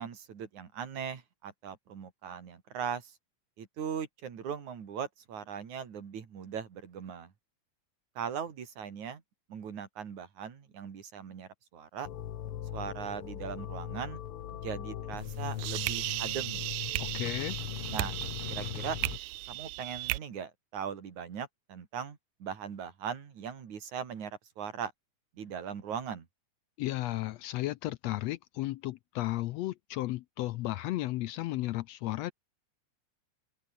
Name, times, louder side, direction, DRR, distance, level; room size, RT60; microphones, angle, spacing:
voice 1, 0.0-3.1 3.6-7.3 8.2-9.2 9.5-12.1 12.7-14.2 14.5-16.9 17.9-18.2 18.5-19.0 19.5-24.9 25.4-26.3, right 7 dB, 70° right, 4.2 m, -39 dB
sound 1, 12.0-19.2, left 11 dB, 60° left, 1.7 m, -39 dB
sound 2, 15.2-20.2, right 20 dB, 90° right, 2.1 m, -36 dB
voice 2, 17.0-17.6 26.8-32.3, left 17 dB, 80° left, 1.5 m, -34 dB
omnidirectional pair, 3.5 m